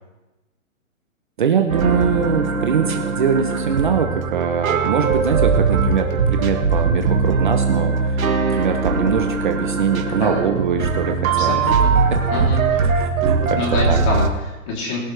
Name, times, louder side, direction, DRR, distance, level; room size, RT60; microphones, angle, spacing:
voice 1, 1.4-8.2 8.5-11.6 12.1-12.2 13.0-13.4 13.9-14.0, right 7 dB, 35° right, 5 dB, 1.0 m, -22 dB
sound 1, 1.7-14.3, right 4 dB, 80° right, 2.2 m, -20 dB
voice 2, 10.1-10.4 11.4-12.0 12.3-12.9 13.5-15.0, left 2 dB, 20° left, -2 dB, 3.4 m, -26 dB
21.0 x 11.0 x 3.4 m, 1.1 s
hypercardioid pair, 175°, 41 cm